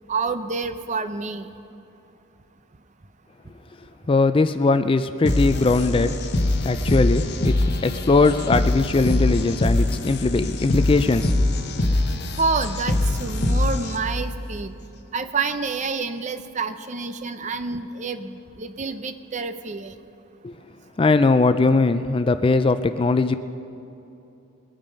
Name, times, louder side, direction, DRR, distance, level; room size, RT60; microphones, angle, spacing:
voice 1, 0.1-1.5 12.4-14.7 15.1-19.9, right 4 dB, 35° right, 10 dB, 0.6 m, -28 dB
voice 2, 4.1-6.2 6.6-7.5 7.8-11.3 20.4-20.6 21.0-23.4, left 3 dB, 25° left, 11 dB, 0.3 m, -20 dB
sound 1, 5.2-14.2, left 1 dB, 50° left, 1.0 m, -23 dB
21.5 x 8.8 x 5.2 m, 2.9 s
head